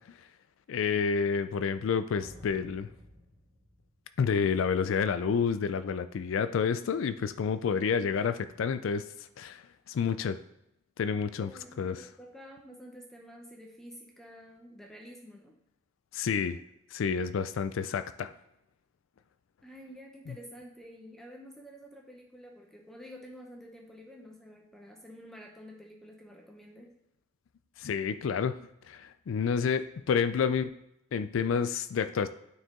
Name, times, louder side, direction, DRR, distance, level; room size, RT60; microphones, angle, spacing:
voice 1, 0.7-2.9 4.2-10.4 11.0-11.5 11.8-12.0 16.1-16.6 16.9-18.3 20.3-20.4 27.8-28.6 28.9-30.8 31.1-32.3, left 6 dB, 70° left, 11 dB, 0.3 m, -29 dB
sound 1, 2.1-4.6, left 1 dB, 20° right, 1.8 m, -53 dB
voice 2, 11.1-15.5 19.6-26.9, equal, ahead, 0 dB, 0.8 m, -49 dB
9.0 x 4.7 x 3.7 m, 0.82 s
head